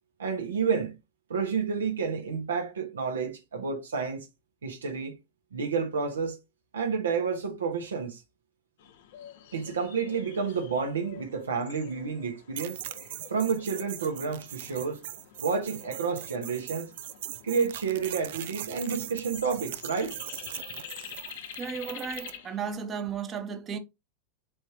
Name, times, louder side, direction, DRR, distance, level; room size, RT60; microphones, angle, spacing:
voice 1, 0.2-1.0 1.3-4.3 4.6-5.1 5.5-6.4 6.7-8.2 9.5-12.8 13.3-15.0 15.4-16.9 17.4-20.2, right 5 dB, 85° right, 0.9 m, -30 dB
sound 1, 8.8-22.7, left 9 dB, 70° left, 0.7 m, -48 dB
sound 2, 12.6-22.4, right 13 dB, 70° right, 0.4 m, -41 dB
voice 2, 21.6-23.8, right 6 dB, 30° right, 0.8 m, -34 dB
4.4 x 3.3 x 2.9 m
hypercardioid pair, 95°, 0 cm